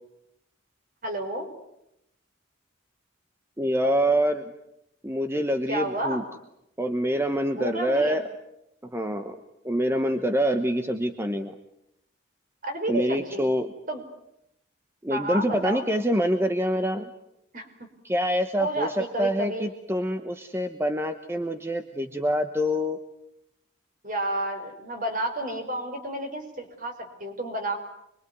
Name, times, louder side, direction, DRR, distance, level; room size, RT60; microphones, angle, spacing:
voice 1, 1.0-1.5 5.7-6.2 7.5-8.2 12.6-13.5 13.9-14.0 15.1-15.8 17.5-17.7 18.6-19.6 24.0-27.8, right 1 dB, 40° right, 5 dB, 5.0 m, -31 dB
voice 2, 3.6-4.4 5.0-6.2 6.8-8.2 8.8-9.4 9.6-11.5 12.9-13.7 15.0-17.1 18.0-23.0, equal, 10° right, 7 dB, 1.1 m, -26 dB
26.0 x 23.0 x 9.5 m, 0.82 s
head